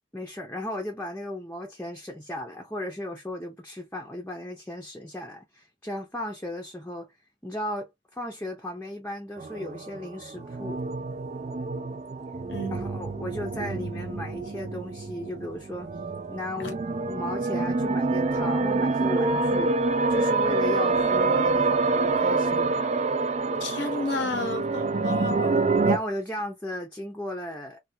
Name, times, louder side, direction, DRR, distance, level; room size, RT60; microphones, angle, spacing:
voice 1, 0.1-7.1 7.4-10.8 12.7-15.9 16.3-16.8 17.1-19.7 20.1-22.7 25.9-27.8, left 1 dB, 10° left, 0.6 m, -35 dB
sound 1, 9.4-26.0, right 3 dB, 40° right, 0.4 m, -26 dB
voice 2, 23.6-25.6, left 2 dB, 80° left, 1.0 m, -31 dB
3.3 x 2.3 x 2.7 m
head